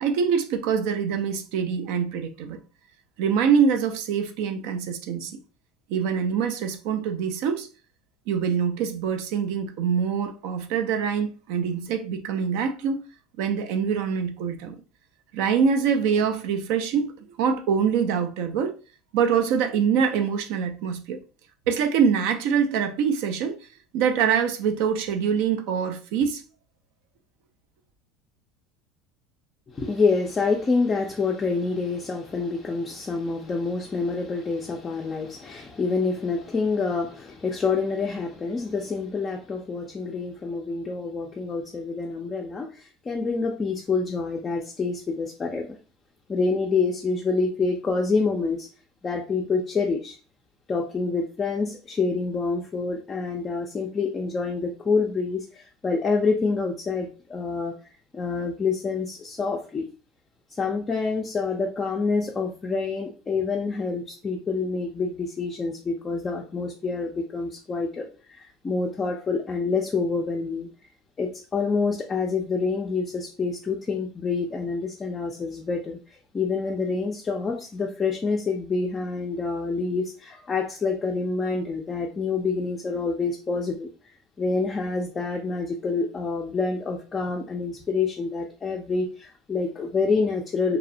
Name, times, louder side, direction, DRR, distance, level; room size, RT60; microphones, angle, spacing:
voice 1, 0.0-2.6 3.2-5.4 5.9-7.7 8.3-13.0 13.4-14.8 15.3-18.8 19.1-21.2 21.7-23.6 23.9-26.4, right 7 dB, 70° right, 0.4 m, -24 dB
voice 2, 29.7-45.8 46.3-48.7 49.0-50.2 50.7-59.8 60.5-70.7 71.2-83.9 84.4-90.8, left 4 dB, 25° left, 0.4 m, -27 dB
2.7 x 2.0 x 2.6 m
supercardioid pair, 115°, 0 cm